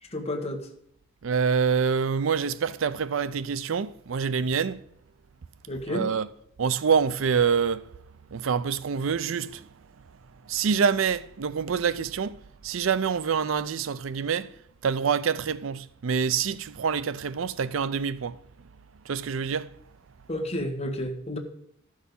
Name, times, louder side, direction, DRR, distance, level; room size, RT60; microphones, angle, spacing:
voice 1, 0.1-0.6 5.7-6.0 20.3-21.4, left 1 dB, 30° left, 1.5 m, -31 dB
voice 2, 1.2-4.8 5.9-6.3 6.6-7.8 8.3-9.7 10.4-14.5 14.8-18.4 19.0-19.7, right 6 dB, 75° right, 0.5 m, -26 dB
12.5 x 6.4 x 5.4 m
head